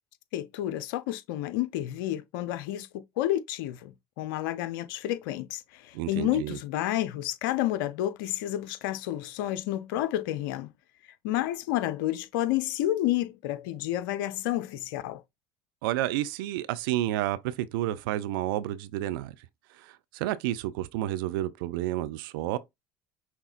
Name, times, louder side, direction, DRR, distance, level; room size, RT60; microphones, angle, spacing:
voice 1, 0.3-10.7 11.2-15.2, left 14 dB, 75° left, 0.6 m, -30 dB
voice 2, 5.9-6.6 15.8-19.3 19.8-22.6, right 14 dB, 75° right, 0.5 m, -30 dB
5.8 x 3.5 x 2.4 m
hypercardioid pair, 70°, 12 cm